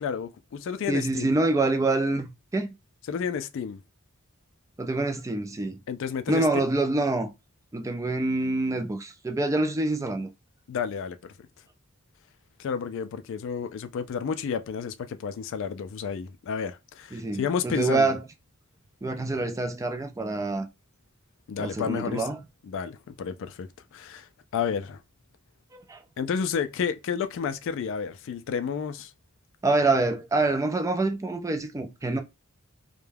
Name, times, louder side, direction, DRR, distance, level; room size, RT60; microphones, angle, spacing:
voice 1, 0.0-1.3 3.1-3.8 5.9-6.4 10.7-11.3 12.6-18.1 21.5-22.3 22.6-25.0 26.2-29.1, left 6 dB, 65° left, 0.3 m, -31 dB
voice 2, 0.9-2.7 4.8-5.8 6.3-7.3 7.7-10.3 17.1-18.2 19.0-20.7 21.6-22.4 25.7-26.0 29.6-32.2, right 2 dB, 15° right, 0.3 m, -26 dB
2.3 x 2.1 x 3.2 m
head